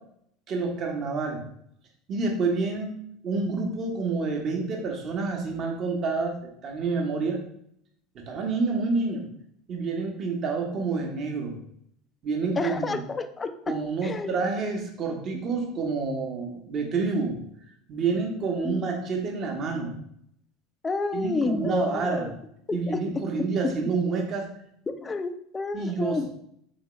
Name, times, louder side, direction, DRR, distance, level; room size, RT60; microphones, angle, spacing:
voice 1, 0.5-1.4 2.1-2.9 3.2-6.3 6.6-7.4 8.1-9.3 9.7-11.6 12.2-13.0 13.7-17.4 17.9-19.9 21.1-22.3 22.7-24.5 25.7-26.3, right 4 dB, 40° right, 2 dB, 1.0 m, -28 dB
voice 2, 12.6-13.7 14.0-14.5 15.3-15.4 18.6-18.9 20.8-22.3 22.9-23.0 24.9-26.3, left 3 dB, 20° left, 9 dB, 0.4 m, -30 dB
4.1 x 3.7 x 3.0 m, 0.70 s
figure-of-eight pair, 70°, 0 cm